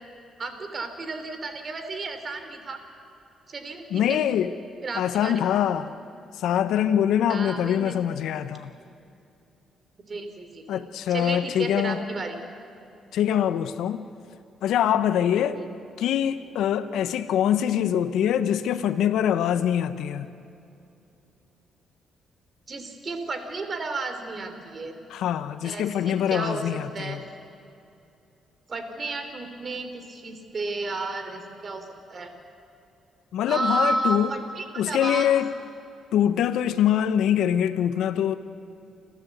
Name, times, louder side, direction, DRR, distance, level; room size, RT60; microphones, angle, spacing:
voice 1, 0.4-2.8 3.5-4.2 4.8-5.4 7.3-8.0 10.1-10.8 11.1-12.4 15.5-15.7 22.7-24.9 25.6-27.2 28.7-32.3 33.5-35.3, right 3 dB, 40° right, 7 dB, 3.0 m, -32 dB
voice 2, 3.9-4.5 5.0-5.9 6.4-8.7 10.7-12.0 13.1-14.1 14.6-15.6 16.0-20.3 25.1-27.2 33.3-34.3 34.8-35.5 36.1-38.3, left 10 dB, 80° left, 11 dB, 0.8 m, -24 dB
29.0 x 12.5 x 8.1 m, 2.7 s
cardioid pair, 90°, 0 cm